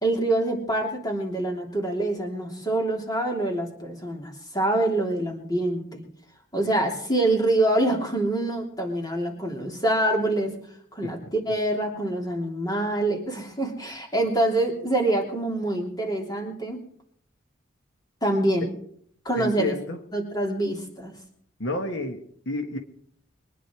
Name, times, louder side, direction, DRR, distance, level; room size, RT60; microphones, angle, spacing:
voice 1, 0.0-6.0 6.5-10.5 10.9-11.2 11.5-16.8 18.2-18.7 19.3-19.7 20.1-21.1, right 1 dB, 20° left, 1 dB, 3.3 m, -25 dB
voice 2, 19.4-20.0 21.6-22.8, left 2 dB, 65° left, 5 dB, 1.4 m, -31 dB
23.0 x 10.0 x 4.7 m, 0.63 s
head